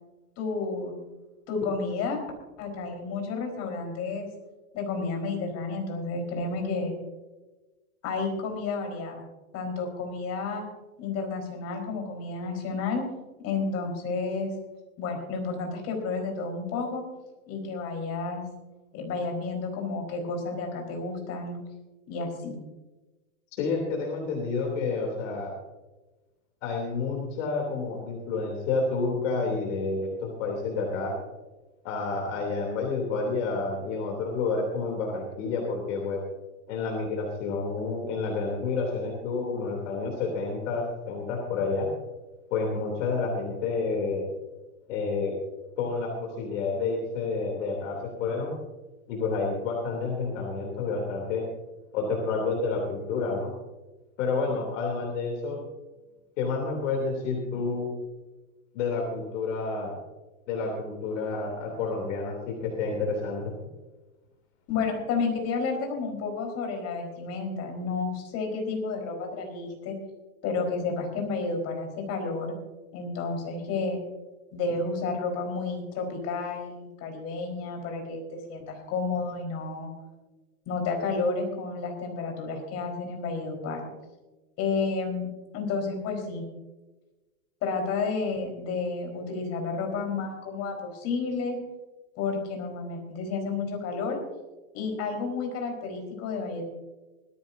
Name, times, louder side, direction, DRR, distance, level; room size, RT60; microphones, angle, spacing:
voice 1, 0.4-1.0 1.5-2.2 2.6-4.3 4.7-6.9 8.0-9.2 9.5-10.6 11.0-13.0 13.4-14.5 15.0-17.0 17.5-18.4 18.9-21.6 22.1-22.5 64.7-70.0 70.4-72.5 72.9-74.0 74.5-79.9 80.7-83.9 84.6-85.3 85.5-86.4 87.6-91.6 92.2-94.2 94.7-96.6, left 4 dB, 35° left, 3 dB, 4.5 m, -31 dB
voice 2, 23.5-25.5 26.6-31.1 31.8-36.2 36.7-41.9 42.5-44.3 44.9-45.3 45.8-48.5 49.1-51.4 51.9-53.5 54.2-55.6 56.4-57.9 58.7-60.0 60.5-63.5, left 4 dB, 55° left, 1 dB, 3.2 m, -29 dB
20.0 x 14.5 x 2.7 m, 1.1 s
hypercardioid pair, 135°, 43 cm